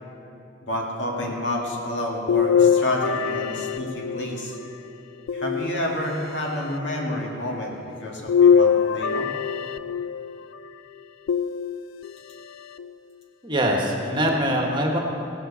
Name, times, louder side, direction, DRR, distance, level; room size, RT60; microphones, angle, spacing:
voice 1, 0.6-4.6 5.3-9.3, left 1 dB, 60° left, -1 dB, 2.0 m, -29 dB
sound 1, 2.3-4.5 5.3-6.3 8.3-10.3 11.3-12.1 12.8-12.9 14.3-14.4, left 7 dB, 85° left, 0.4 m, -22 dB
voice 2, 13.4-15.0, equal, 25° right, 0 dB, 1.4 m, -23 dB
15.5 x 7.9 x 6.8 m, 2.7 s
head